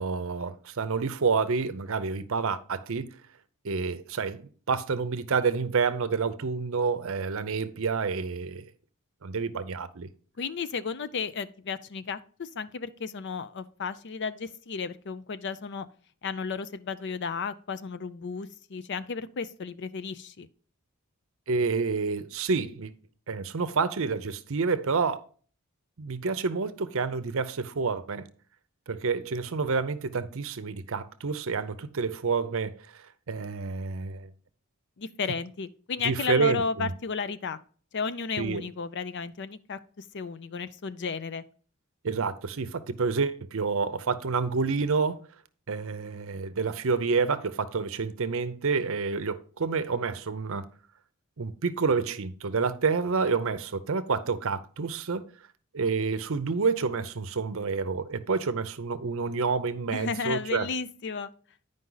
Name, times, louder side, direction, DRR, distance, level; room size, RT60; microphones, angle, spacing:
voice 1, 0.0-3.1 3.6-8.7 9.2-10.1 21.5-22.9 23.3-25.2 26.0-28.3 28.9-32.7 33.3-34.3 36.0-36.9 38.4-38.6 42.0-45.2 45.7-50.7 51.4-55.2 55.7-60.7, right 4 dB, 60° right, 0.6 m, -28 dB
voice 2, 10.4-15.9 16.2-20.5 35.0-37.6 37.9-41.4 59.9-61.3, left 5 dB, 50° left, 0.5 m, -33 dB
9.5 x 5.3 x 3.9 m
head